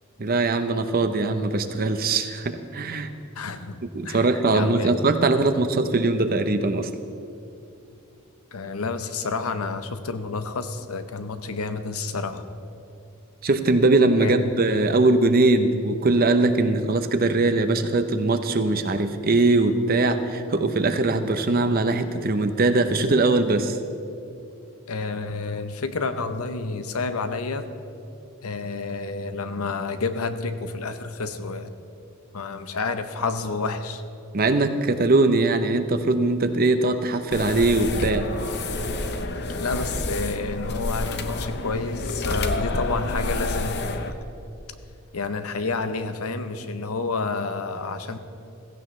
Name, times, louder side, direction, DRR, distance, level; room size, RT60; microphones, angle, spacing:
voice 1, 0.2-3.1 3.9-6.9 13.4-23.8 34.3-38.3, right 2 dB, 45° right, 8 dB, 0.7 m, -21 dB
voice 2, 3.4-4.9 8.5-12.4 14.2-14.5 24.9-27.7 28.4-31.7 32.3-34.0 39.1-44.2 45.1-48.2, left 3 dB, 85° left, 9 dB, 0.8 m, -30 dB
sound 1, 37.3-44.1, left 2 dB, 50° left, 0.7 m, -29 dB
16.0 x 15.0 x 3.2 m, 2.6 s
head